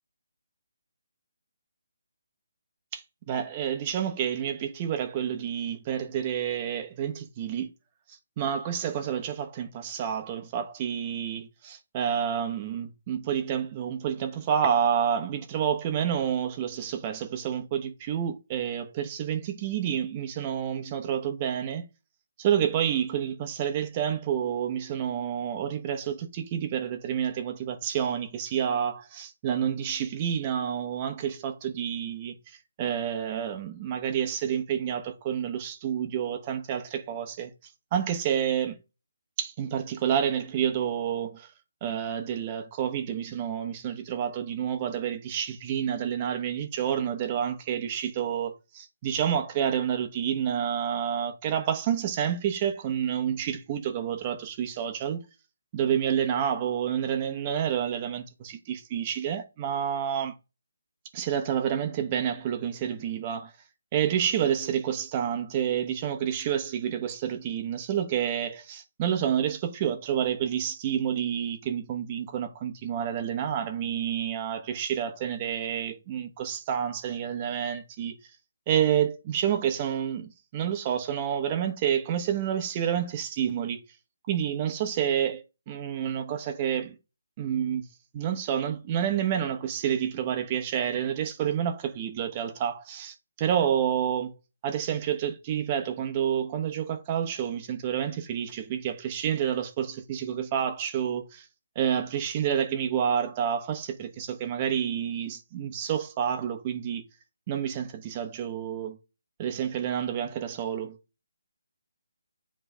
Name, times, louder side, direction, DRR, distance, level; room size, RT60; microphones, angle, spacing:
voice 1, 2.9-7.7 8.1-21.8 22.4-37.5 37.9-38.8 39.4-41.5 41.8-55.2 55.7-60.3 61.1-63.5 63.9-78.1 78.7-83.8 84.3-86.9 87.4-87.8 88.1-94.4 94.6-101.5 101.7-107.0 107.5-109.0 109.4-111.0, right 9 dB, 25° right, 1.0 m, -29 dB
9.9 x 3.3 x 3.4 m
figure-of-eight pair, 155°, 0 cm